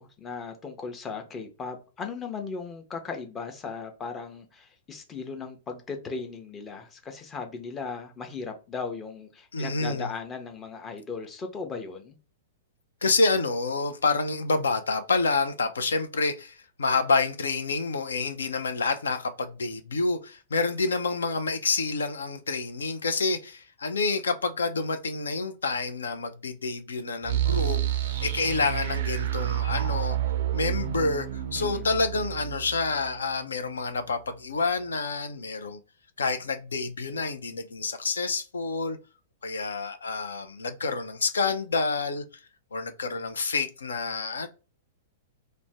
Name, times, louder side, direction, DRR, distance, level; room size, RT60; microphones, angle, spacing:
voice 1, 0.0-12.2 31.6-31.9, left 5 dB, 20° left, 0.6 m, -37 dB
voice 2, 9.5-10.1 13.0-27.8 28.2-30.2 30.5-31.3 31.5-35.8 36.2-39.0 39.4-42.2 42.7-44.5, left 3 dB, 70° left, 0.4 m, -28 dB
sound 1, 27.2-34.0, right 12 dB, 55° right, 0.3 m, -29 dB
2.5 x 2.0 x 3.2 m
figure-of-eight pair, 105°, 0 cm